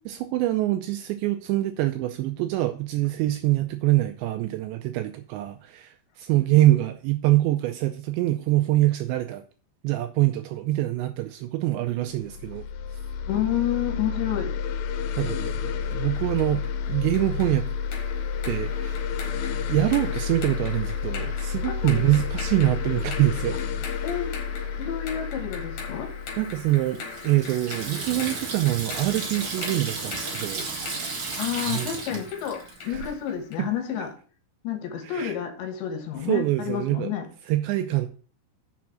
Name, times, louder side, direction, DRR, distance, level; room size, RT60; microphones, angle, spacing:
voice 1, 0.1-9.4 9.8-12.7 15.1-16.6 16.9-17.6 18.5-19.1 19.7-23.6 26.4-30.7 31.7-32.2 32.9-33.0 33.6-33.7 35.0-35.3 36.3-37.1 37.5-38.1, right 16 dB, 85° right, 2.6 m, -25 dB
sound 1, 12.1-27.6, left 6 dB, 90° left, 3.2 m, -30 dB
voice 2, 13.3-14.6 21.7-22.0 24.0-24.3 24.8-26.1 31.4-34.1 34.6-37.2, left 10 dB, 70° left, 3.5 m, -29 dB
sound 2, 15.9-33.7, left 5 dB, 55° left, 3.9 m, -41 dB
Water tap faucet / Sink (filling or washing), 26.4-33.1, right 4 dB, 45° right, 2.1 m, -34 dB
7.2 x 5.9 x 7.4 m
omnidirectional pair, 5.6 m